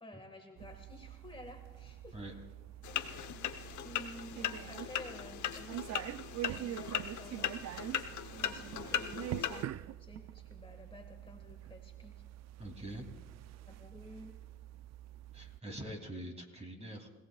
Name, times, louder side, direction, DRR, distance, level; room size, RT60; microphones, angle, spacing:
voice 1, 0.0-2.2 3.8-6.1 6.5-7.5 8.2-9.7 10.0-12.2 13.6-14.3, left 1 dB, 20° left, 3 dB, 1.6 m, -52 dB
sound 1, 0.6-15.6, right 13 dB, 60° right, 0.5 m, -45 dB
sound 2, 2.8-9.6, left 10 dB, 75° left, 1.0 m, -38 dB
voice 2, 12.6-13.2 15.3-17.1, right 1 dB, 20° right, 3 dB, 2.8 m, -44 dB
29.5 x 17.0 x 2.4 m, 1.3 s
cardioid pair, 90°, 30 cm